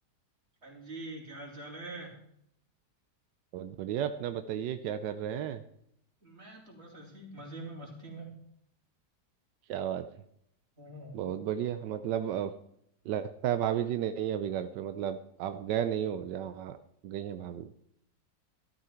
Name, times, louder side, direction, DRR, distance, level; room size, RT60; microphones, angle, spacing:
voice 1, 0.6-2.2 6.2-8.3 10.8-11.2, right 2 dB, 35° right, -1 dB, 3.6 m, -44 dB
voice 2, 3.5-5.6 9.7-10.1 11.1-12.5 13.0-16.8 17.0-17.7, right 10 dB, 90° right, 10 dB, 1.3 m, -33 dB
13.5 x 12.5 x 4.5 m, 0.72 s
omnidirectional pair, 1.8 m